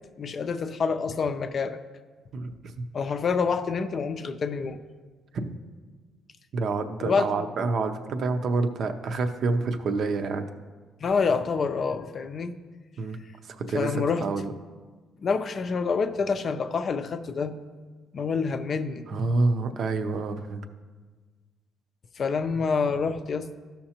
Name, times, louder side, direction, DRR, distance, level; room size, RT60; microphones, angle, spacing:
voice 1, 0.2-1.8 2.9-4.8 7.0-7.3 11.0-12.6 13.7-14.2 15.2-17.6 18.1-19.1 22.2-23.6, left 5 dB, 45° left, 9 dB, 0.5 m, -27 dB
voice 2, 2.3-2.8 5.3-5.6 6.5-10.5 13.0-13.2 13.4-14.5 19.1-20.6, right 3 dB, 55° right, 7 dB, 0.6 m, -28 dB
13.5 x 5.7 x 2.9 m, 1.4 s
cardioid pair, 115°, 0 cm